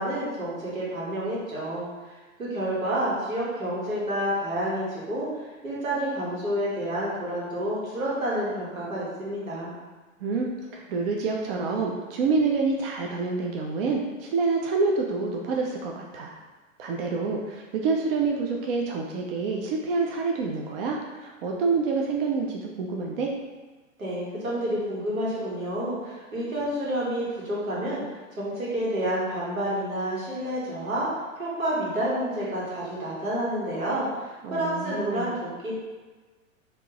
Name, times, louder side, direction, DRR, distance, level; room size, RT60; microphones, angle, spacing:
voice 1, 0.0-1.9 2.4-5.3 5.6-9.7 24.0-28.0 28.3-31.1 31.4-35.7, right 1 dB, 85° right, -7 dB, 1.4 m, -29 dB
voice 2, 10.2-16.3 16.8-23.3 34.4-35.3, right 4 dB, 45° right, 0 dB, 0.5 m, -27 dB
3.5 x 2.6 x 2.8 m, 1.3 s
figure-of-eight pair, 100°, 41 cm